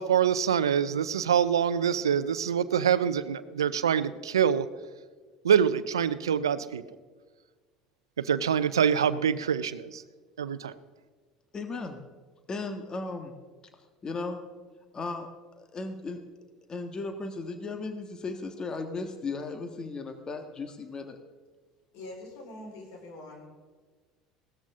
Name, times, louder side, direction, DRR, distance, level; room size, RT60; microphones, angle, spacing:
voice 1, 0.0-4.7 5.4-6.8 8.2-10.0 10.4-10.7, right 8 dB, 90° right, 14 dB, 0.6 m, -25 dB
voice 2, 11.5-12.0 12.5-13.3 13.7-14.4 14.9-15.3 15.6-16.2 16.7-21.2, left 3 dB, 30° left, 7 dB, 1.6 m, -36 dB
voice 3, 21.9-23.5, left 2 dB, 70° left, 1 dB, 4.5 m, -44 dB
17.5 x 13.5 x 3.7 m, 1.4 s
hypercardioid pair, 70°, 2 cm